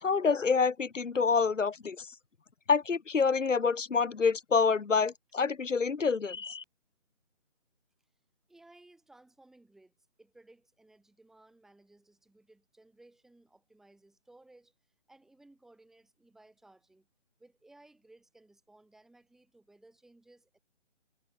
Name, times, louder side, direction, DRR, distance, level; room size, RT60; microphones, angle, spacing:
voice 1, 0.0-2.1 2.7-6.6, left 5 dB, 90° left, 1.3 m, -27 dB
voice 2, 8.5-14.7 15.1-17.1 17.4-20.6, right 2 dB, ahead, 5.1 m, -60 dB
figure-of-eight pair, 170°, 37 cm